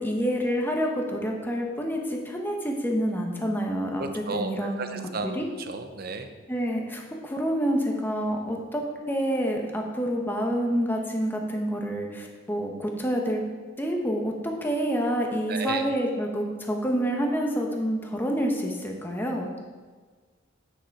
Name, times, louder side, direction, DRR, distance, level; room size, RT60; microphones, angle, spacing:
voice 1, 0.0-5.5 6.5-13.4 13.8-19.6, equal, 10° left, 1 dB, 1.1 m, -28 dB
voice 2, 4.0-5.4 5.7-6.3 15.5-15.8, right 3 dB, 50° right, 7 dB, 0.7 m, -33 dB
9.2 x 6.7 x 4.7 m, 1.5 s
head